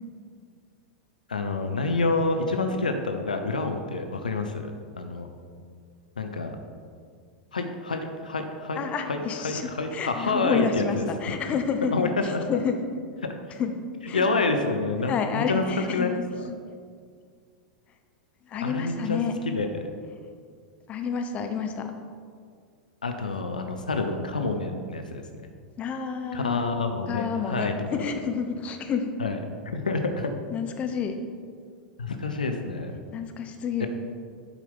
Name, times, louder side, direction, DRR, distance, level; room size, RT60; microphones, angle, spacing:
voice 1, 1.3-4.7 5.0-5.3 6.2-6.5 7.5-8.8 9.1-9.2 9.4-11.4 11.9-12.4 13.2-13.3 14.1-15.6 15.9-16.1 18.6-19.8 23.0-25.5 26.3-28.1 29.2-29.4 29.7-30.3 32.0-32.9 33.8-33.9, left 3 dB, 80° left, 5 dB, 0.6 m, -28 dB
voice 2, 8.8-12.8 13.5-14.3 15.0-16.1 16.5-16.6 18.5-19.4 20.9-21.9 25.8-26.6 27.1-29.1 30.5-31.2 33.1-33.9, left 6 dB, 30° left, 6 dB, 0.7 m, -29 dB
7.8 x 4.6 x 5.4 m, 2.1 s
figure-of-eight pair, 95°, 4 cm